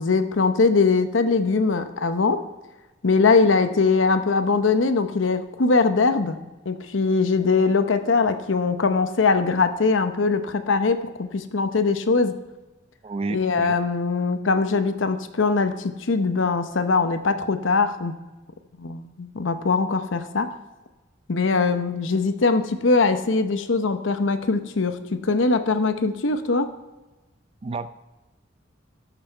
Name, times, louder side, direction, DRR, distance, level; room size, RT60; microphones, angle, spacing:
voice 1, 0.0-2.4 3.0-6.4 6.7-12.3 13.3-18.2 18.8-20.5 21.3-26.7, left 4 dB, 90° left, 9 dB, 0.8 m, -21 dB
voice 2, 13.0-13.8 27.6-27.9, right 3 dB, 30° right, 13 dB, 0.4 m, -30 dB
13.0 x 6.1 x 4.5 m, 1.1 s
head